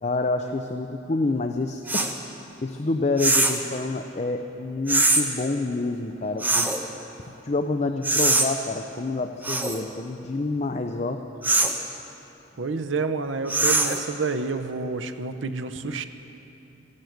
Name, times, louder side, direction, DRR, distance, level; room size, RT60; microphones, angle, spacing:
voice 1, 0.0-2.2 2.6-6.7 7.2-11.2, left 3 dB, 35° left, 6 dB, 0.5 m, -28 dB
sound 1, 1.9-2.1 3.2-3.6 4.9-5.2 6.4-6.8 8.0-8.5 9.4-9.8 11.4-11.8 13.5-14.0, right 2 dB, 10° right, 0.9 m, -22 dB
voice 2, 12.6-16.1, right 4 dB, 85° right, 9 dB, 0.7 m, -29 dB
14.0 x 12.0 x 7.9 m, 2.9 s
head